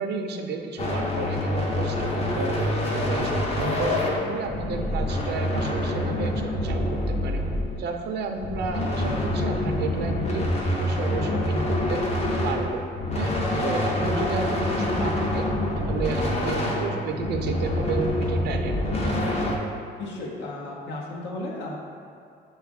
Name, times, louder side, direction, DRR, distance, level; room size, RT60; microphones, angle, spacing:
voice 1, 0.0-3.3 3.6-7.4 7.8-10.5 10.7-12.0 12.4-12.8 13.1-13.3 13.6-15.5 15.7-19.4, right 4 dB, 65° right, 4 dB, 0.5 m, -32 dB
sound 1, 0.8-8.0 8.4-19.6, left 1 dB, 35° left, 0.6 m, -26 dB
voice 2, 20.0-21.8, left 2 dB, 80° left, -2 dB, 0.8 m, -34 dB
6.2 x 2.4 x 3.5 m, 2.4 s
cardioid pair, 120°, 18 cm